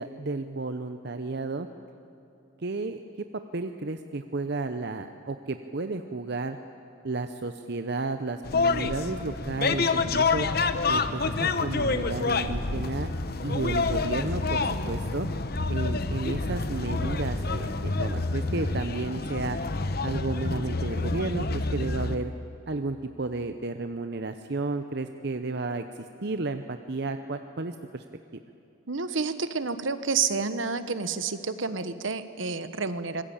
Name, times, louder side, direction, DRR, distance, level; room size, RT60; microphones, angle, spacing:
voice 1, 0.0-1.7 2.6-3.0 3.5-6.6 7.0-10.5 10.9-13.1 13.4-15.3 15.7-19.6 20.0-22.3 22.7-28.0, right 3 dB, 55° right, 8 dB, 0.7 m, -32 dB
sound 1, 8.4-22.2, left 3 dB, 50° left, 1.0 m, -28 dB
voice 2, 28.9-33.2, right 5 dB, 70° right, 12 dB, 1.2 m, -29 dB
25.5 x 20.5 x 8.8 m, 2.9 s
head